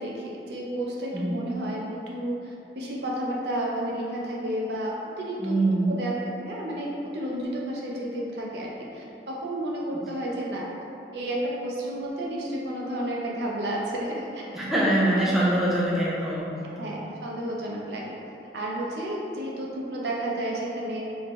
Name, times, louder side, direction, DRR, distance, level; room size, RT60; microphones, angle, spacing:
voice 1, 0.0-5.6 5.9-10.7 11.1-14.4 14.7-14.8 15.2-15.4 16.8-18.0 18.5-21.1, right 1 dB, 70° right, -3 dB, 0.6 m, -31 dB
voice 2, 5.4-6.0 14.5-16.5, right 1 dB, ahead, -8 dB, 0.6 m, -24 dB
3.5 x 2.7 x 2.9 m, 2.7 s
head